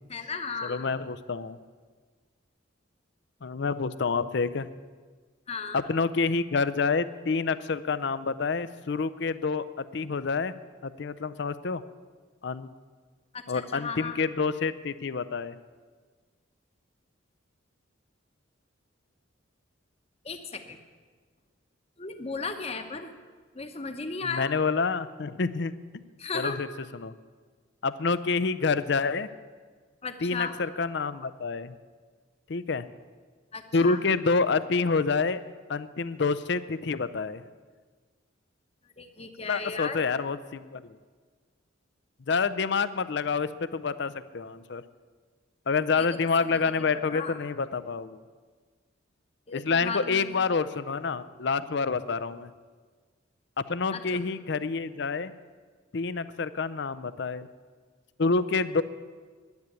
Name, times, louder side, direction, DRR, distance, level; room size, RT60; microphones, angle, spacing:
voice 1, 0.1-0.9 5.5-5.8 13.3-14.2 20.2-20.8 22.0-23.1 23.5-24.5 26.2-26.6 30.0-30.6 33.5-34.0 39.0-40.1 46.0-46.1 46.5-47.4 49.5-50.4 53.9-54.2, left 4 dB, 30° left, 7 dB, 1.0 m, -35 dB
voice 2, 0.6-1.6 3.4-4.7 5.7-10.6 10.8-11.8 12.4-12.7 13.5-15.5 24.2-25.7 26.3-26.7 27.0-27.1 27.8-29.3 30.2-31.7 32.5-32.9 33.7-35.4 35.7-37.4 39.5-41.0 42.3-44.8 45.7-48.2 49.5-52.5 53.6-55.3 55.9-57.5 58.2-58.8, left 4 dB, 60° left, 15 dB, 0.5 m, -28 dB
10.5 x 10.5 x 8.3 m, 1.5 s
head